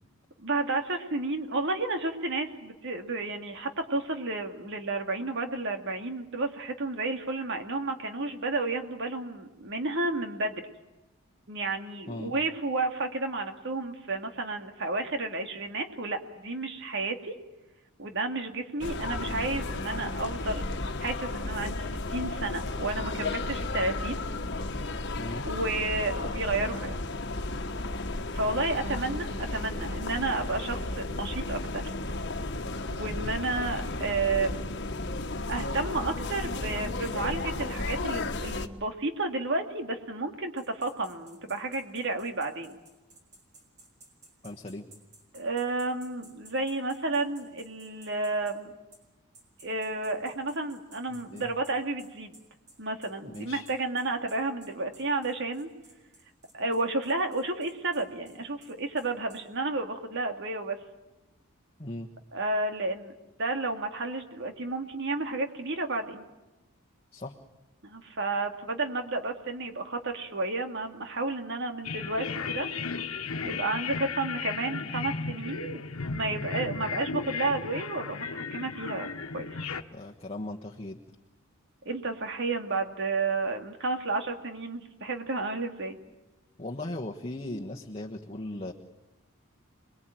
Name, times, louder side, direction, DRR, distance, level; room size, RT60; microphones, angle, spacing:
voice 1, 0.4-10.6 11.5-17.3 18.0-20.6 21.0-24.2 25.5-26.9 28.3-31.8 32.8-34.6 35.5-42.8 45.3-48.7 49.6-52.4 52.8-55.7 56.5-60.8 62.3-63.1 63.4-66.2 67.8-72.7 73.4-75.8 76.1-79.5 81.8-86.0, right 2 dB, 55° right, 5 dB, 2.4 m, -31 dB
sound 1, 18.8-38.7, left 2 dB, 55° left, 1.5 m, -33 dB
voice 2, 25.2-25.5 33.1-33.3 44.4-44.9 51.3-51.5 53.2-53.7 61.8-62.1 67.1-67.4 79.9-81.0 86.6-88.7, left 1 dB, 30° left, 0 dB, 1.3 m, -38 dB
sound 2, 40.6-48.6 48.9-49.0 49.3-59.4, right 2 dB, 35° right, 5.9 m, -56 dB
sound 3, 71.8-79.8, left 5 dB, 85° left, 1.4 m, -35 dB
27.0 x 21.5 x 9.1 m, 1.0 s
head